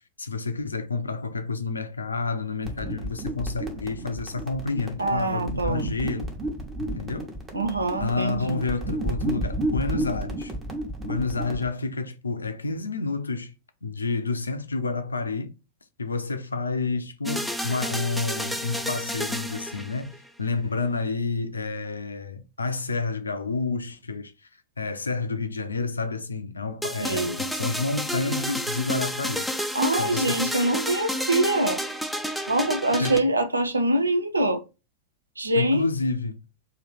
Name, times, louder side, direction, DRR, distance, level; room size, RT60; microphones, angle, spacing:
voice 1, 0.2-6.3 6.8-7.3 8.0-10.5 11.0-13.5 13.8-15.5 16.0-24.3 24.8-29.7 30.0-30.5 33.0-33.3 35.5-36.4, left 3 dB, 75° left, 0.5 m, -29 dB
sound 1, 2.6-11.7, right 1 dB, 15° right, 1.2 m, -32 dB
voice 2, 5.0-5.9 7.5-8.6 27.0-27.4 29.7-31.8 32.5-34.6 35.4-35.9, right 1 dB, 80° right, 0.5 m, -24 dB
sound 2, 17.3-20.3 26.8-33.2, equal, ahead, 0.5 m, -30 dB
3.1 x 2.7 x 4.0 m
figure-of-eight pair, 90°, 0 cm